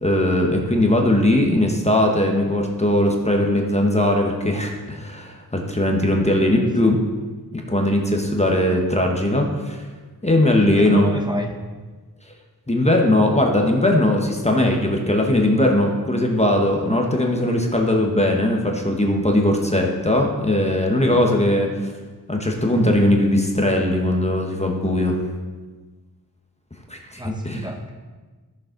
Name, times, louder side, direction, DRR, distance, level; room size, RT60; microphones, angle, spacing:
voice 1, 0.0-7.0 7.7-9.8 10.2-11.1 12.7-21.9 22.3-25.2 26.9-27.6, left 1 dB, 15° left, 1 dB, 1.1 m, -19 dB
voice 2, 6.5-7.0 10.5-11.6 27.2-27.9, right 1 dB, 10° right, 3 dB, 1.0 m, -31 dB
13.5 x 7.1 x 3.9 m, 1.3 s
wide cardioid pair, 105°, 38 cm